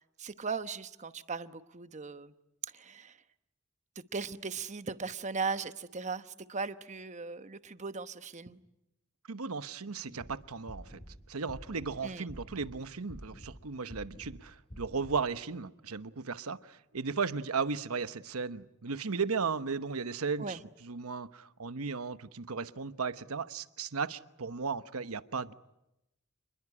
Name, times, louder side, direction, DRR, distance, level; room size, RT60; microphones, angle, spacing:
voice 1, 0.2-2.3 2.7-3.1 4.1-8.6 12.0-12.3 20.4-20.6, right 4 dB, 35° right, 11 dB, 1.0 m, -38 dB
voice 2, 9.3-11.0 11.3-25.5, right 5 dB, 90° right, 12 dB, 1.0 m, -35 dB
sound 1, 10.1-10.3 10.7-11.1 11.5-11.9 12.3-12.7 13.1-13.5 13.9-14.3 14.7-15.1, equal, 25° left, 6.2 m, -47 dB
28.5 x 21.0 x 9.8 m, 0.92 s
head